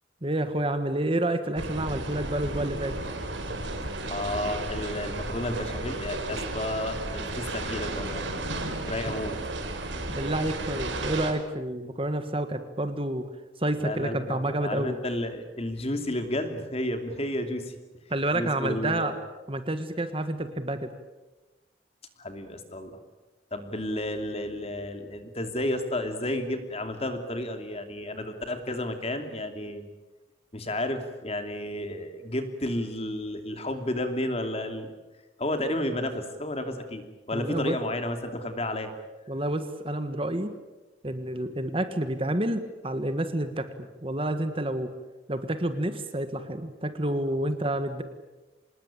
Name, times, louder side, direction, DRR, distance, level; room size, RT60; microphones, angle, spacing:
voice 1, 0.2-3.0 9.0-9.2 10.1-13.3 13.6-15.0 18.1-19.1 19.5-20.9 37.3-37.7 39.3-40.5 41.0-44.9 45.3-48.0, right 1 dB, 30° right, 9 dB, 1.6 m, -29 dB
sound 1, 1.6-11.3, right 2 dB, 80° right, 3.8 m, -33 dB
voice 2, 4.0-8.2 8.9-9.4 13.8-17.7 18.3-19.1 22.2-23.0 23.5-29.9 30.5-34.9 35.4-38.9, left 1 dB, 30° left, 7 dB, 2.8 m, -32 dB
26.0 x 20.5 x 9.0 m, 1.1 s
head